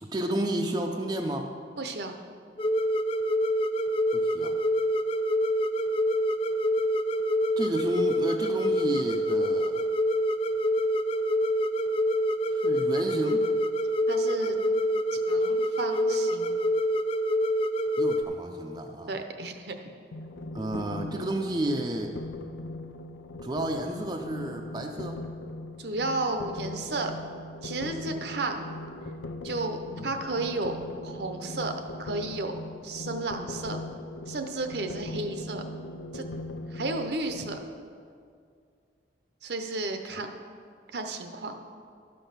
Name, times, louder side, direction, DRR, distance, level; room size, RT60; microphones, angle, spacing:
voice 1, 0.0-1.5 4.1-4.6 7.6-9.8 12.5-13.4 18.0-19.1 20.5-22.2 23.4-25.2 30.0-30.1, right 1 dB, 20° right, 2 dB, 0.5 m, -31 dB
voice 2, 1.8-2.2 14.1-14.6 15.1-16.6 19.1-19.9 25.8-27.1 27.6-28.6 29.4-30.8 31.0-32.5 32.8-33.8 34.3-35.6 36.1-36.3 36.7-37.6 39.4-40.3 40.9-41.6, right 2 dB, 65° right, 6 dB, 0.8 m, -33 dB
sound 1, 2.6-18.2, equal, 30° left, 0.3 m, -26 dB
sound 2, 20.1-37.6, left 1 dB, 90° left, 0.6 m, -40 dB
12.0 x 5.3 x 5.7 m, 2.2 s
head